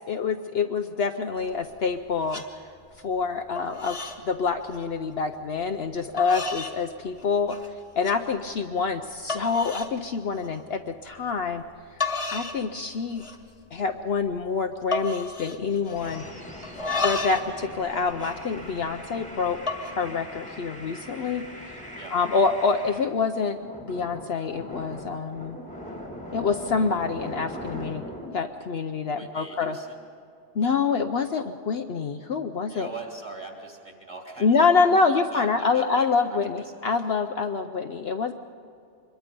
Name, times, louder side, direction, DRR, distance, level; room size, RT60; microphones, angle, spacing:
voice 1, 0.1-2.4 3.0-4.0 4.2-7.6 8.0-11.6 12.3-13.2 13.7-16.3 17.0-19.6 19.9-21.5 22.1-25.6 26.3-28.0 28.3-29.8 30.6-32.9 34.4-38.3, left 5 dB, 60° left, 6 dB, 0.9 m, -26 dB
sound 1, 1.4-2.0 2.3-2.5 2.9-3.3 3.5-4.2 4.5-4.9 5.6-5.7 6.2-6.8 7.2-7.7 8.0-8.2 8.7-8.8 9.3-9.9 10.3-10.6 11.7-11.8 12.0-12.6 12.9-13.5 13.8-13.9 14.1-14.5 14.9-16.3 16.6-17.5 17.8-19.1 19.5-19.9, left 3 dB, 25° left, 1.6 m, -32 dB
sound 2, 15.9-23.1 23.6-28.4, equal, 5° left, 1.8 m, -40 dB
voice 2, 16.8-17.1 22.0-22.2 29.0-30.0 32.7-34.5 34.8-34.9 35.3-36.6, right 2 dB, 20° right, 1 dB, 3.0 m, -41 dB
24.5 x 21.5 x 5.2 m, 2.5 s
omnidirectional pair, 1.3 m